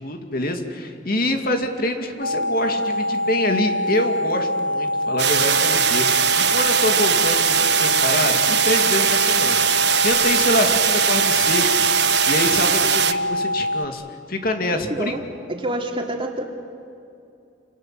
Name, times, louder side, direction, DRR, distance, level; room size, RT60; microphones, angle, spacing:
voice 1, 0.0-11.7 12.3-14.0 14.3-15.1, left 1 dB, 55° left, 4 dB, 2.4 m, -25 dB
sound 1, 2.2-13.9, left 1 dB, 85° left, 1.1 m, -24 dB
sound 2, 5.2-13.1, right 10 dB, 65° right, 1.1 m, -20 dB
voice 2, 14.9-15.2 15.5-16.4, right 1 dB, 30° right, 1 dB, 3.0 m, -27 dB
28.5 x 27.0 x 7.7 m, 2.6 s
head